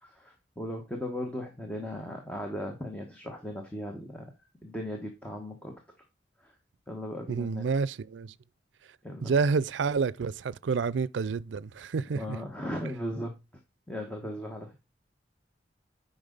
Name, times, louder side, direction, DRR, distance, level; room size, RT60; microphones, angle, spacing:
voice 1, 0.0-4.3 4.6-5.7 6.4-6.5 6.9-7.6 9.0-9.3 12.1-13.4 13.9-14.8, left 1 dB, 5° left, 1.2 m, -37 dB
voice 2, 7.3-8.3 9.2-12.4, right 5 dB, 90° right, 0.4 m, -29 dB
8.7 x 5.5 x 3.9 m
head